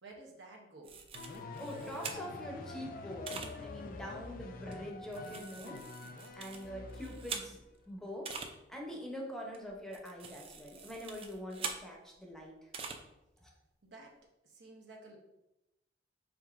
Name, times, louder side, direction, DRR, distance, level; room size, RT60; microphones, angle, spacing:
voice 1, 0.0-1.0 13.8-14.2 14.4-15.2, right 2 dB, 85° right, 0 dB, 0.8 m, -53 dB
sound 1, 0.8-2.5 3.3-3.5 4.7-7.8 8.2-8.5 9.5-11.8 12.7-13.0, right 5 dB, 35° right, 0.4 m, -44 dB
sound 2, 1.1-7.6, left 3 dB, 55° left, 0.4 m, -46 dB
voice 2, 1.6-5.8 6.3-7.6 7.9-8.3 8.7-12.7 13.4-13.5, equal, 5° left, -1 dB, 0.7 m, -44 dB
4.8 x 3.5 x 2.4 m, 0.92 s
head